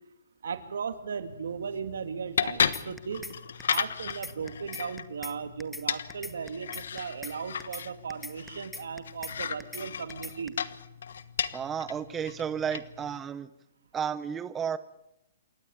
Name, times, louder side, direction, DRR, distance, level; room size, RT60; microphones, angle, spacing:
voice 1, 0.4-3.3 3.6-10.5, right 6 dB, 80° right, 10 dB, 2.3 m, -37 dB
sound 1, 1.2-13.2, left 7 dB, 80° left, 1.2 m, -35 dB
sound 2, 2.7-3.3 3.6-3.8 4.1-5.3 5.6-5.8 6.1-7.3 7.6-7.8 8.1-9.3 9.6-9.8 10.1-10.5, left 2 dB, 5° left, 1.2 m, -41 dB
voice 2, 11.5-13.5 13.9-14.8, right 8 dB, 15° right, 14 dB, 0.8 m, -32 dB
28.5 x 12.5 x 8.8 m, 0.82 s
hypercardioid pair, 145°, 0 cm